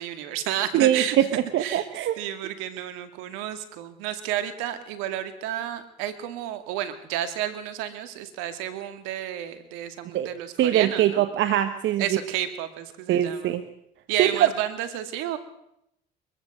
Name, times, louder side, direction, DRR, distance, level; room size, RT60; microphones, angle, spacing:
voice 1, 0.0-1.2 1.6-1.8 2.2-11.2 12.0-13.5 14.1-15.4, right 11 dB, 85° right, 11 dB, 2.3 m, -31 dB
voice 2, 0.7-2.2 10.1-10.3 10.6-12.2 13.1-13.6 14.2-14.5, right 12 dB, 65° right, 10 dB, 1.5 m, -22 dB
23.5 x 14.5 x 7.9 m, 0.79 s
supercardioid pair, 70°, 21 cm